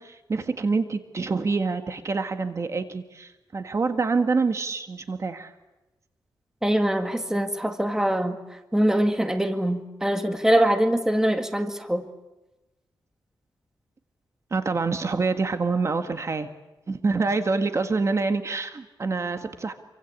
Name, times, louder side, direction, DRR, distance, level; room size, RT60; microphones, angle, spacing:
voice 1, 0.0-5.5 14.5-16.5 16.9-19.7, right 4 dB, 40° right, 7 dB, 1.9 m, -26 dB
voice 2, 6.6-8.4 8.7-12.1, right 1 dB, 5° right, 6 dB, 1.9 m, -23 dB
28.0 x 24.5 x 8.5 m, 1.0 s
wide cardioid pair, 125°, 8 cm